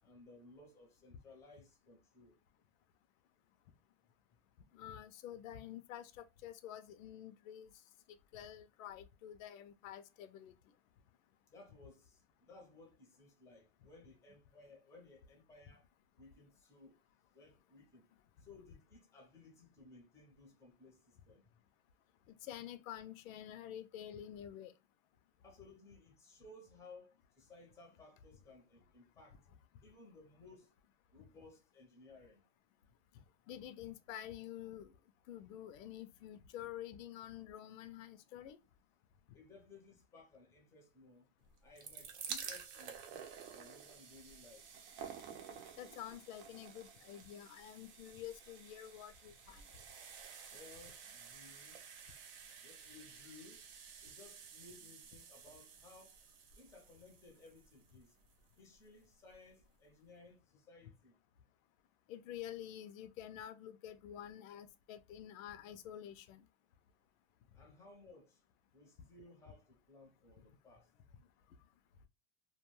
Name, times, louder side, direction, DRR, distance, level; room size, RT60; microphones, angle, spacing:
voice 1, 0.0-2.4 11.5-15.8 16.2-17.0 17.3-18.1 18.4-21.6 25.4-29.4 29.8-30.7 31.1-32.5 39.3-41.3 41.6-43.2 43.5-44.7 50.5-51.9 52.6-53.7 54.0-56.2 56.6-58.2 58.6-61.2 67.5-68.4 68.7-70.9, left 3 dB, 5° left, 0.6 m, -60 dB
voice 2, 4.7-7.7 8.1-10.6 22.3-24.7 33.5-34.9 35.3-38.6 45.8-49.7 62.1-66.4, left 11 dB, 80° left, 0.5 m, -49 dB
sound 1, 41.5-58.5 59.3-59.4 59.6-59.7, right 7 dB, 55° right, 0.7 m, -51 dB
2.3 x 2.2 x 3.0 m
supercardioid pair, 155°, 40 cm